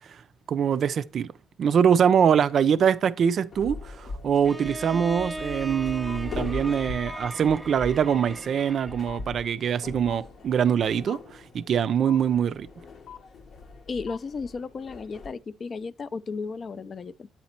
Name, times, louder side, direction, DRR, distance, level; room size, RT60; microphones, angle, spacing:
voice 1, 0.5-1.3 1.6-12.7, right 8 dB, 60° right, 0.3 m, -23 dB
sound 1, 3.5-15.3, left 3 dB, 60° left, 0.8 m, -41 dB
Bowed string instrument, 4.4-9.3, right 1 dB, 15° right, 0.7 m, -38 dB
sound 2, 5.1-5.2 6.1-6.2 7.1-7.2 8.1-8.2 9.1-9.2 10.1-10.2 11.1-11.2 12.1-12.2 13.1-13.2 14.1-14.2, left 10 dB, 85° left, 0.9 m, -41 dB
voice 2, 13.9-17.3, left 4 dB, 45° left, 0.3 m, -34 dB
8.0 x 4.1 x 4.3 m
cardioid pair, 90°, 0 cm